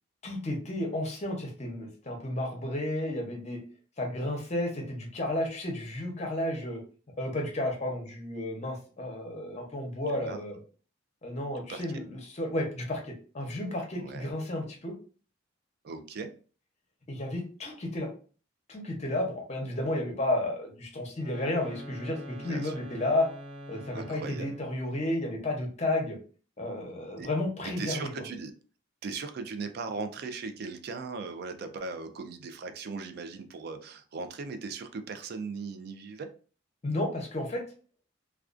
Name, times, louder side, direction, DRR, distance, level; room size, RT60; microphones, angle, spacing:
voice 1, 0.2-3.6 4.0-6.8 7.2-10.6 11.2-15.0 17.1-18.1 18.7-23.3 23.7-26.2 26.6-28.1 36.8-37.6, left 1 dB, 35° left, 2 dB, 0.7 m, -32 dB
voice 2, 11.5-11.9 13.9-14.3 15.8-16.3 22.4-22.7 23.9-24.5 27.2-27.3 27.8-28.5 29.0-36.3, right 4 dB, 55° right, 8 dB, 0.3 m, -38 dB
sound 1, 21.1-24.8, equal, 25° right, 0.7 m, -44 dB
2.3 x 2.3 x 2.4 m, 0.39 s
head